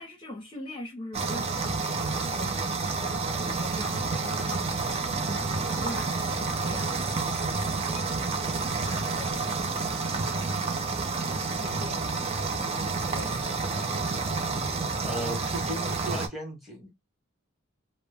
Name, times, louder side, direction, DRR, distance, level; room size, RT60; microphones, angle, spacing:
voice 1, 0.0-14.3, left 1 dB, 25° left, 0.6 m, -43 dB
sound 1, 1.1-16.3, right 4 dB, 30° right, 0.4 m, -29 dB
voice 2, 15.0-16.9, equal, ahead, 0.9 m, -36 dB
2.1 x 2.0 x 3.2 m
head